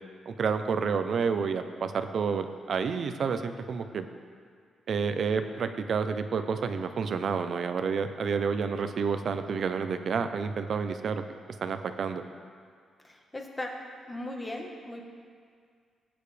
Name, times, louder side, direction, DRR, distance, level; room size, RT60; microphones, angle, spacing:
voice 1, 0.3-4.1 4.9-11.2 11.6-12.2, right 5 dB, 50° right, 8 dB, 0.6 m, -29 dB
voice 2, 13.0-13.8 14.1-15.0, left 1 dB, 15° left, 1 dB, 1.3 m, -38 dB
19.5 x 9.0 x 3.4 m, 2.1 s
wide cardioid pair, 160°, 0 cm